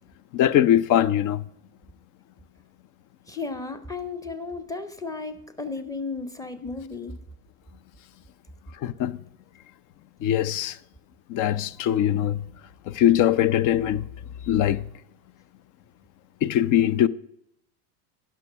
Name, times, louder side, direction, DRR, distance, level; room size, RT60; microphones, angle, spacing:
voice 1, 0.3-1.4 8.8-9.2 10.2-10.8 11.3-12.5 12.9-14.1 14.4-14.9 16.4-17.1, left 11 dB, 40° left, 0.5 m, -21 dB
voice 2, 3.3-7.2, left 4 dB, 10° left, 0.9 m, -34 dB
11.0 x 6.2 x 5.6 m
hypercardioid pair, 100°, 46 cm